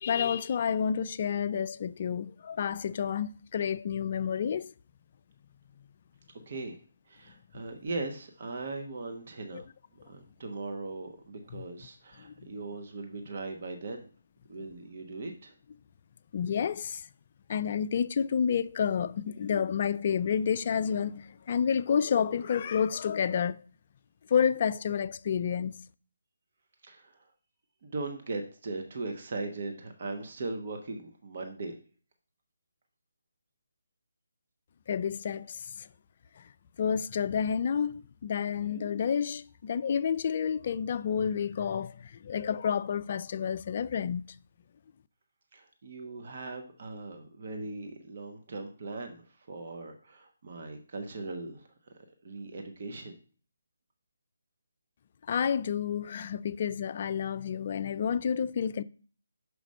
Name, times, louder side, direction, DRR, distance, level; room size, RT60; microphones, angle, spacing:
voice 1, 0.0-4.7 9.5-9.6 12.2-12.5 16.3-17.1 17.5-23.6 24.3-25.8 34.9-35.9 36.4-36.5 36.8-44.3 55.3-58.8, left 7 dB, 40° left, 0.3 m, -30 dB
voice 2, 6.5-6.8 7.1-9.7 10.1-14.1 14.5-15.5 26.8-27.3 27.8-31.8 45.5-51.9 52.2-53.1, right 3 dB, 45° right, 1.1 m, -39 dB
6.3 x 4.9 x 5.3 m
hypercardioid pair, 160°, 0 cm